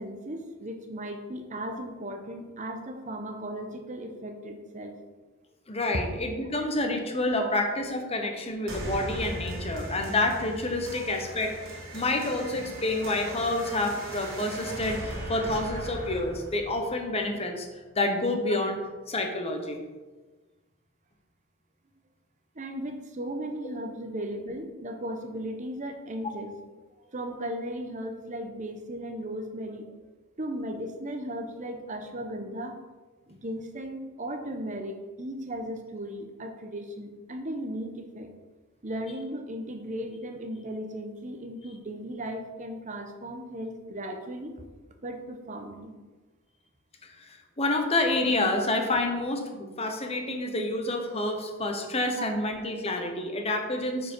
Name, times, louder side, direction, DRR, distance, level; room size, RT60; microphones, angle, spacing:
voice 1, 0.0-4.9 5.9-6.1 7.4-7.6 22.5-26.5 27.0-29.9 30.4-32.8 33.3-38.3 38.8-44.5 45.0-45.9 52.2-52.3, right 1 dB, 35° right, 5 dB, 0.9 m, -36 dB
voice 2, 5.7-11.6 11.9-17.7 17.9-18.8 19.1-19.8 47.2-54.1, left 2 dB, 30° left, 4 dB, 1.1 m, -28 dB
sound 1, 8.7-17.7, right 1 dB, 65° right, 2.1 m, -38 dB
9.7 x 4.9 x 4.6 m, 1.3 s
head